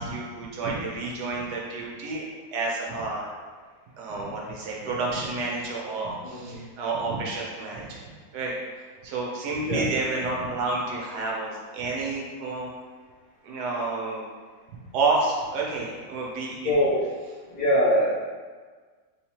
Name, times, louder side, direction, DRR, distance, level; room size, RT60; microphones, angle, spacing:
voice 1, 0.0-3.3 4.0-8.0 8.3-8.6 9.0-12.7 13.4-14.2 14.7-16.7, right 3 dB, 70° right, -3 dB, 1.2 m, -30 dB
voice 2, 6.2-6.6 9.6-9.8 16.6-17.1 17.5-18.2, equal, 35° left, -9 dB, 0.9 m, -23 dB
3.4 x 3.2 x 2.8 m, 1.5 s
omnidirectional pair, 2.0 m